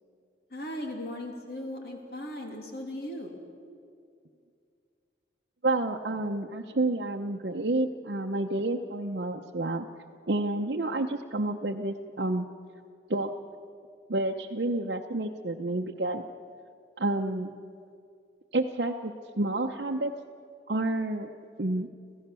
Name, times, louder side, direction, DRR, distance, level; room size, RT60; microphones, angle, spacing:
voice 1, 0.5-3.4, left 1 dB, 60° left, 2 dB, 2.8 m, -37 dB
voice 2, 5.6-9.9 10.3-12.5 13.1-13.3 14.1-16.2 17.0-17.6 18.5-20.1 20.7-21.3 21.6-21.9, right 2 dB, 60° right, 0 dB, 0.8 m, -29 dB
26.5 x 16.0 x 6.9 m, 2.3 s
head